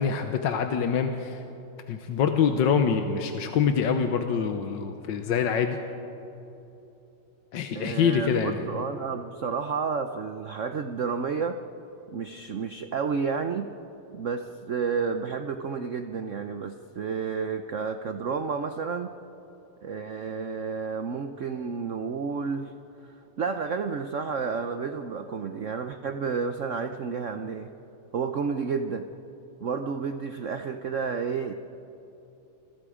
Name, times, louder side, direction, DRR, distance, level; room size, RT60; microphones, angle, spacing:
voice 1, 0.0-1.4 1.9-5.8 7.5-8.8, left 6 dB, 65° left, 6 dB, 1.5 m, -25 dB
voice 2, 7.7-11.6 12.1-13.7 14.1-19.1 19.8-22.7 23.1-27.7 28.1-29.1 29.6-31.5, right 5 dB, 85° right, 8 dB, 0.6 m, -31 dB
29.5 x 22.0 x 5.0 m, 3.0 s
omnidirectional pair, 2.4 m